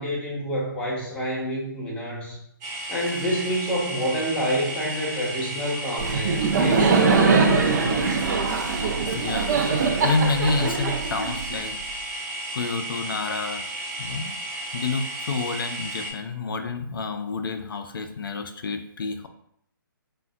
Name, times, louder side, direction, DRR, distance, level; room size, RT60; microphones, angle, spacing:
voice 1, 0.0-2.4 2.9-8.1, equal, 10° left, -5 dB, 0.6 m, -28 dB
sound 1, 2.6-16.1, right 1 dB, 20° right, 0.8 m, -33 dB
Laughter, 6.0-11.8, right 4 dB, 50° right, 0.4 m, -22 dB
voice 2, 9.1-11.7 12.5-13.6 14.0-14.3 14.7-19.3, left 4 dB, 75° left, 7 dB, 0.4 m, -29 dB
3.3 x 2.1 x 2.5 m, 0.74 s
hypercardioid pair, 150°, 12 cm